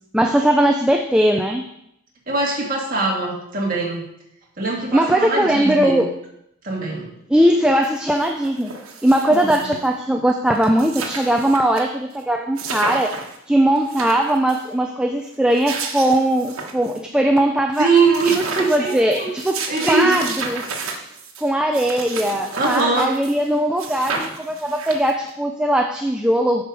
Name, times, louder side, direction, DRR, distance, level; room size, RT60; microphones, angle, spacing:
voice 1, 0.1-1.7 4.9-6.1 7.3-8.7 9.0-13.2 13.5-17.9 18.4-19.6 19.8-20.6 21.4-26.6, right 1 dB, 5° right, 3 dB, 0.4 m, -19 dB
voice 2, 2.3-4.0 4.6-6.1 6.6-7.1 9.3-9.7 17.8-19.3 19.7-20.2 22.5-23.1, right 3 dB, 40° right, -2 dB, 1.9 m, -21 dB
sound 1, 7.8-7.9 8.2-9.9 10.3-10.4 10.6-11.8 12.1-12.2 12.6-13.4 13.8-14.7 15.3-17.0 17.4-17.5 17.7-23.5 23.8-25.3, right 4 dB, 80° right, 1.2 m, -32 dB
7.9 x 4.9 x 6.1 m, 0.77 s
head